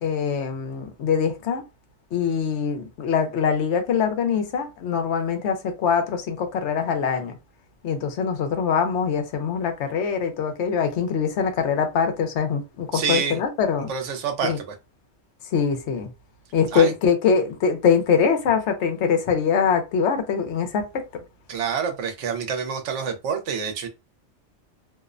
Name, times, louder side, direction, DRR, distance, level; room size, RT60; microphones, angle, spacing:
voice 1, 0.0-1.6 2.1-7.3 7.8-13.9 14.4-14.6 15.5-16.1 16.5-21.1, left 6 dB, 75° left, 0.9 m, -23 dB
voice 2, 12.9-13.4 13.9-14.7 16.7-16.9 21.5-23.9, right 6 dB, 80° right, 1.0 m, -27 dB
2.6 x 2.0 x 2.4 m
omnidirectional pair, 1.2 m